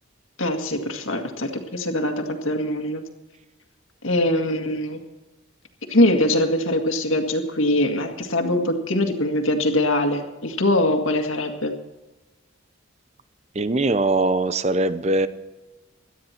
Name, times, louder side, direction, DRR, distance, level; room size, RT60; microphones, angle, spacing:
voice 1, 0.4-3.0 4.0-5.0 5.9-11.7, left 1 dB, 75° left, 5 dB, 1.9 m, -22 dB
voice 2, 13.6-15.3, right 2 dB, 30° right, 13 dB, 0.7 m, -21 dB
17.5 x 12.5 x 4.4 m, 1.1 s
head